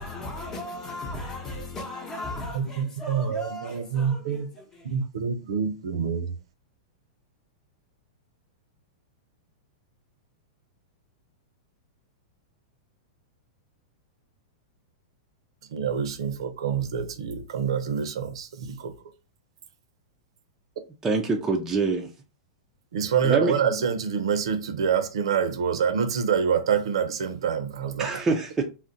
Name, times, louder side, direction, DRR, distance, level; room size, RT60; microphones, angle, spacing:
voice 1, 0.0-4.9, left 1 dB, 20° left, 0.8 m, -37 dB
voice 2, 2.5-4.5 4.9-6.3 15.7-18.9 22.9-28.2, right 7 dB, 75° right, 0.6 m, -26 dB
voice 3, 21.0-22.1 23.2-23.6 28.0-28.6, right 3 dB, 15° right, 0.4 m, -25 dB
2.4 x 2.1 x 3.8 m
hypercardioid pair, 125°, 3 cm